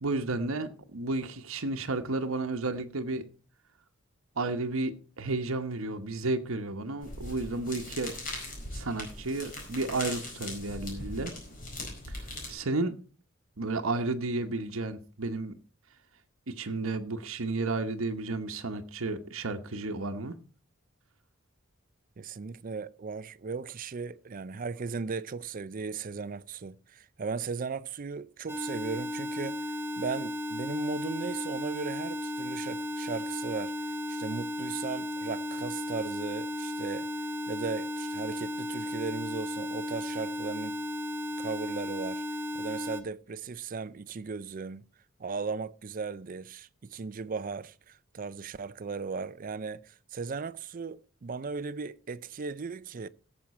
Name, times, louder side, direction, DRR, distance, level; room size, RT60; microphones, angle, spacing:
voice 1, 0.0-3.2 4.4-8.1 8.7-11.3 12.1-12.9 13.6-15.5 16.5-20.4, right 2 dB, 75° right, 1.0 m, -32 dB
sound 1, 7.0-12.6, left 2 dB, 40° left, 4.7 m, -40 dB
voice 2, 22.2-37.1 37.5-40.8 41.4-42.2 42.5-44.8 45.2-53.1, right 4 dB, 40° right, 0.4 m, -37 dB
sound 2, 28.5-43.0, left 1 dB, 10° right, 0.9 m, -35 dB
17.0 x 7.4 x 4.2 m
head